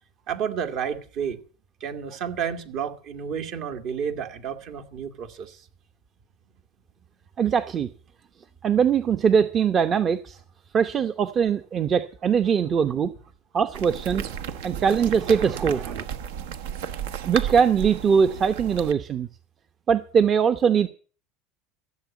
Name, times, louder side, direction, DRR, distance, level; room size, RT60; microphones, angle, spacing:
voice 1, 0.3-1.4 1.8-5.7 14.3-16.0, right 7 dB, 60° right, 2.0 m, -32 dB
voice 2, 7.4-7.9 8.6-10.4 10.7-13.1 13.5-14.2 14.6-15.8 17.2-19.3 19.9-20.9, right 7 dB, 35° right, 0.8 m, -21 dB
sound 1, 13.7-18.9, right 9 dB, 80° right, 1.0 m, -33 dB
14.5 x 7.6 x 8.2 m
hypercardioid pair, 95°, 0 cm